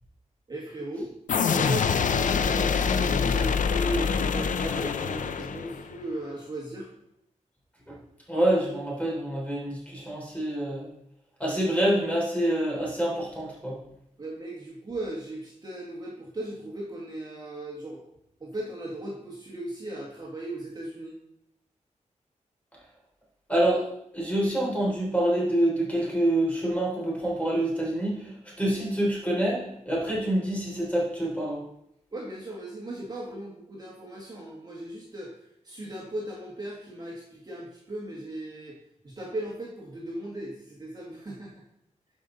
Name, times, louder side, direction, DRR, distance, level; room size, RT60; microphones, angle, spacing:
voice 1, 0.5-1.1 1.5-6.9 14.2-18.0 18.4-21.2 32.1-38.8 39.0-41.6, right 1 dB, 30° right, -3 dB, 1.6 m, -37 dB
sound 1, 1.3-6.0, left 6 dB, 90° left, 0.5 m, -25 dB
voice 2, 8.3-10.9 11.4-13.8 23.5-23.9 24.1-31.6, right 1 dB, 10° left, -4 dB, 3.8 m, -26 dB
12.0 x 5.3 x 3.9 m, 0.77 s
wide cardioid pair, 130°, 13 cm